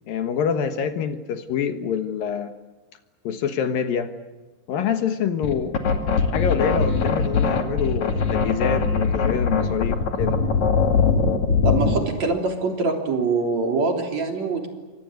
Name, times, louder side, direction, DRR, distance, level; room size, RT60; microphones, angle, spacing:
voice 1, 0.1-2.5 3.2-4.1 4.7-5.8 6.3-10.4, left 7 dB, 65° left, 8 dB, 2.9 m, -26 dB
sound 1, 5.4-12.1, left 5 dB, 50° left, 3.3 m, -21 dB
voice 2, 11.6-14.7, right 3 dB, 45° right, 3 dB, 4.3 m, -24 dB
29.0 x 25.0 x 8.0 m, 1.2 s
omnidirectional pair, 4.8 m